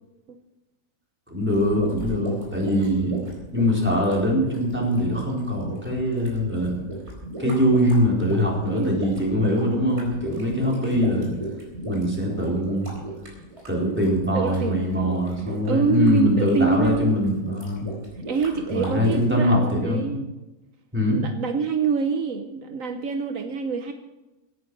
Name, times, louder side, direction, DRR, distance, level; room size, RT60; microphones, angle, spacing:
voice 1, 1.3-3.2 3.5-6.8 7.4-11.3 11.8-12.9 13.7-17.9 18.7-20.2 20.9-21.2, equal, 10° right, -3 dB, 4.2 m, -22 dB
sound 1, 1.5-19.2, right 2 dB, 50° right, 4.8 m, -37 dB
voice 2, 2.8-3.1 7.4-7.8 8.7-9.0 14.3-14.9 15.6-17.2 18.3-20.3 21.0-23.9, right 5 dB, 70° right, 6 dB, 1.3 m, -26 dB
17.0 x 10.0 x 6.2 m, 1.0 s
omnidirectional pair, 1.5 m